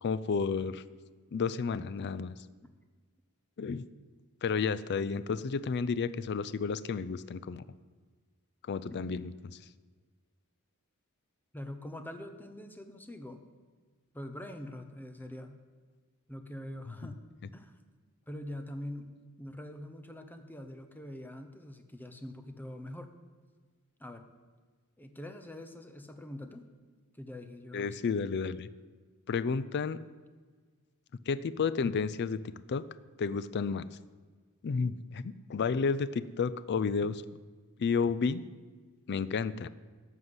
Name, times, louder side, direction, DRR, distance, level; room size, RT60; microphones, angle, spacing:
voice 1, 0.0-0.8 1.3-2.4 3.6-3.8 4.4-7.6 8.7-9.3 27.7-28.7 29.3-30.0 31.3-32.8 33.2-33.8 34.6-37.2 37.8-38.4 39.1-39.7, left 5 dB, 50° left, 16 dB, 0.4 m, -31 dB
voice 2, 11.5-13.4 14.1-15.6 16.3-17.2 17.5-17.8 18.3-23.1 24.0-24.3 25.0-26.7 27.1-28.0, left 1 dB, 10° left, 7 dB, 0.8 m, -44 dB
13.0 x 5.7 x 7.9 m, 1.5 s
head